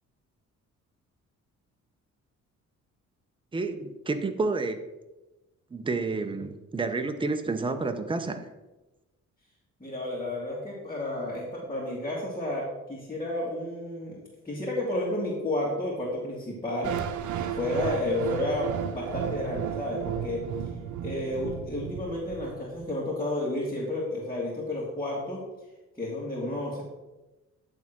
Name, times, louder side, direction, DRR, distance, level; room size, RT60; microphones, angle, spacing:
voice 1, 3.5-4.8 5.7-8.5, right 3 dB, 15° right, 7 dB, 0.8 m, -30 dB
voice 2, 9.8-16.9 17.6-20.4 21.0-25.4 26.0-26.8, left 1 dB, 15° left, -6 dB, 2.3 m, -31 dB
sound 1, 16.8-22.9, right 9 dB, 75° right, 0.8 m, -34 dB
10.5 x 3.6 x 6.1 m, 1.1 s
cardioid pair, 90°, 30 cm